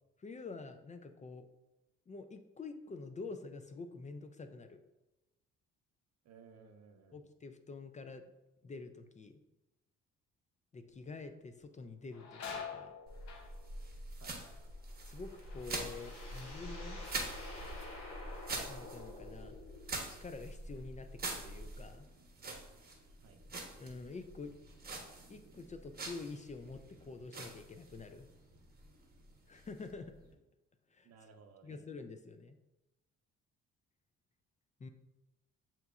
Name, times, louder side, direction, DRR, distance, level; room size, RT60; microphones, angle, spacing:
voice 1, 0.2-1.5 2.1-4.8 7.1-8.2 8.6-9.4 10.7-12.9 15.0-17.0 18.6-19.6 20.1-22.1 23.8-24.5 25.3-28.3 29.5-30.1 30.9-31.1 31.6-32.6 34.8-34.9, left 4 dB, 25° left, 8 dB, 0.4 m, -47 dB
voice 2, 6.2-7.2 14.2-14.4 23.2-23.4 31.0-31.8, right 5 dB, 60° right, 6 dB, 0.7 m, -58 dB
sound 1, 10.9-11.3 11.6-17.2 17.5-18.1 18.6-21.5 21.8-22.0 22.9-23.1 23.6-24.7 25.1-25.3 25.9-26.5 26.9-28.0, left 6 dB, 65° left, 0.8 m, -51 dB
sound 2, 13.1-30.3, right 2 dB, 30° right, 1.0 m, -46 dB
sound 3, 14.9-20.0, left 2 dB, 85° left, 1.2 m, -50 dB
7.6 x 2.9 x 2.4 m, 0.98 s
cardioid pair, 90°, 30 cm